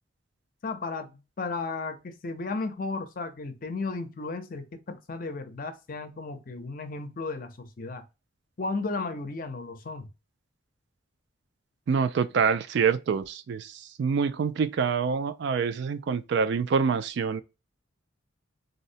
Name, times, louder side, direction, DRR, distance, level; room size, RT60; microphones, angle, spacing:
voice 1, 0.6-8.0 8.6-10.1, left 3 dB, 45° left, 0.5 m, -34 dB
voice 2, 11.9-17.4, right 6 dB, 60° right, 0.3 m, -26 dB
3.9 x 2.0 x 2.6 m
head